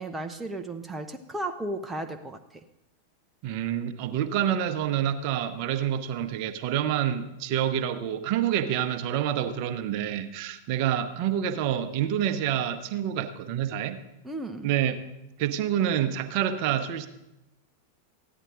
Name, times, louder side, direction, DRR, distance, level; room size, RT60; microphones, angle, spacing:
voice 1, 0.0-2.6 14.2-14.7, right 2 dB, 10° right, 4 dB, 0.7 m, -35 dB
voice 2, 3.4-14.0 14.6-15.0 15.4-17.1, right 10 dB, 45° right, 7 dB, 0.8 m, -27 dB
14.5 x 10.0 x 3.9 m, 0.89 s
figure-of-eight pair, 90°, 0 cm